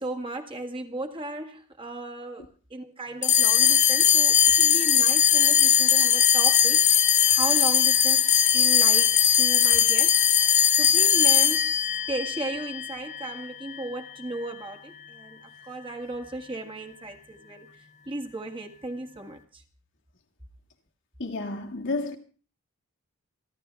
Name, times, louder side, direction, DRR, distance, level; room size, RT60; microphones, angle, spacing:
voice 1, 0.0-11.7 12.1-17.7 18.1-19.6, right 2 dB, 25° right, 1.8 m, -36 dB
sound 1, 3.2-13.9, left 9 dB, 35° left, 1.1 m, -20 dB
voice 2, 21.2-22.2, left 3 dB, 55° left, 2.1 m, -31 dB
28.5 x 11.5 x 3.4 m
head